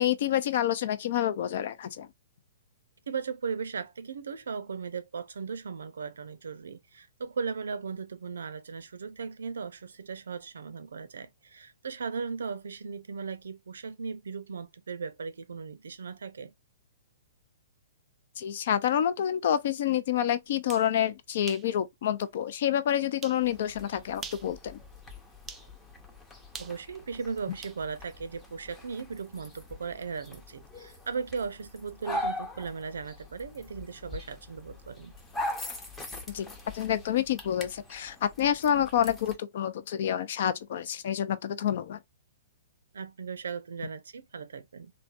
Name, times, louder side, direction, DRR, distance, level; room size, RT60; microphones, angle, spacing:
voice 1, 0.0-2.1 18.4-24.8 36.3-42.0, left 10 dB, 55° left, 0.4 m, -28 dB
voice 2, 3.1-16.5 26.6-35.1 42.9-44.9, right 5 dB, 70° right, 0.5 m, -37 dB
sound 1, 20.5-20.9 21.5-21.7 22.2-22.3 23.2-23.4 24.1-24.5 25.5-25.7 26.5-27.8, right 6 dB, 15° right, 0.4 m, -43 dB
sound 2, 23.4-39.4, left 1 dB, 15° left, 0.7 m, -42 dB
3.2 x 2.1 x 2.5 m
figure-of-eight pair, 115°, 0 cm